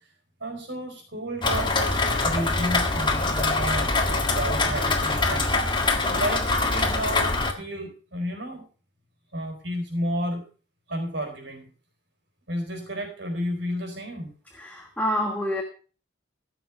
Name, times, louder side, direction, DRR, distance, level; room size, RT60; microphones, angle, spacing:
voice 1, 0.4-8.7 9.3-10.4 10.9-11.7 12.5-14.3, equal, 70° right, 3 dB, 4.5 m, -32 dB
Rain, 1.4-7.5, left 3 dB, 25° left, 1.7 m, -24 dB
voice 2, 14.6-15.6, equal, 10° left, 2 dB, 1.4 m, -27 dB
15.0 x 6.8 x 6.0 m, 0.38 s
head